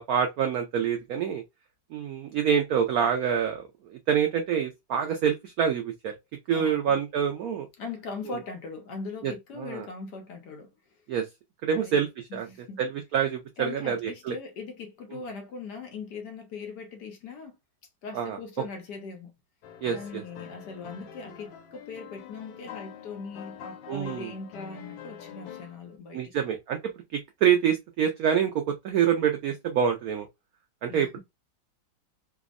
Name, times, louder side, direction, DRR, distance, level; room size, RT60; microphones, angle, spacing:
voice 1, 0.0-1.4 1.9-6.1 6.5-7.7 9.2-9.3 9.6-9.9 11.1-11.3 11.6-12.5 12.8-14.4 15.1-15.2 18.1-18.4 19.8-20.2 23.9-24.3 26.1-26.8 27.4-30.3 30.8-31.2, right 8 dB, 80° right, 0.8 m, -26 dB
voice 2, 6.5-7.0 7.8-10.7 11.7-12.0 12.3-12.8 13.6-17.6 18.0-19.3 19.9-26.5 30.9-31.2, left 4 dB, 70° left, 1.2 m, -40 dB
sound 1, 19.6-25.9, left 9 dB, 90° left, 1.5 m, -45 dB
3.4 x 2.0 x 2.3 m
omnidirectional pair, 2.1 m